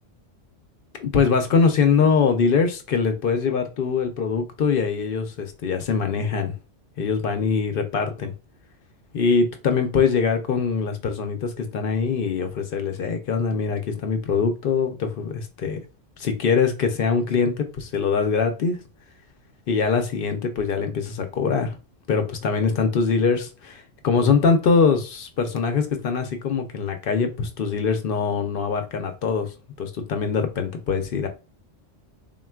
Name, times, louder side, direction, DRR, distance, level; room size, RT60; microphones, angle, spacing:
voice 1, 1.0-6.5 7.0-8.3 9.1-15.8 16.2-18.8 19.7-21.7 22.1-31.3, left 5 dB, 60° left, 0.6 m, -23 dB
3.7 x 2.2 x 2.2 m
omnidirectional pair, 1.3 m